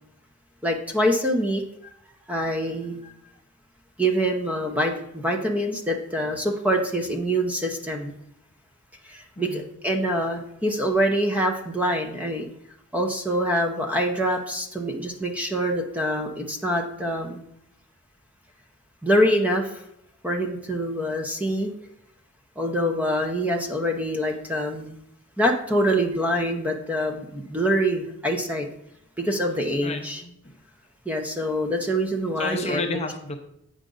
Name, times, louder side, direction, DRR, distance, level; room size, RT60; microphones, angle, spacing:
voice 1, 0.6-1.6 2.3-3.1 4.0-8.2 9.0-12.4 12.9-17.4 19.0-19.8 20.2-21.7 22.6-25.0 25.4-28.7 29.2-30.2 31.1-33.0, equal, 5° right, 3 dB, 0.7 m, -25 dB
voice 2, 9.4-9.7 29.8-30.6 32.4-33.4, left 3 dB, 30° left, 5 dB, 0.6 m, -32 dB
8.0 x 5.1 x 3.8 m, 0.77 s
head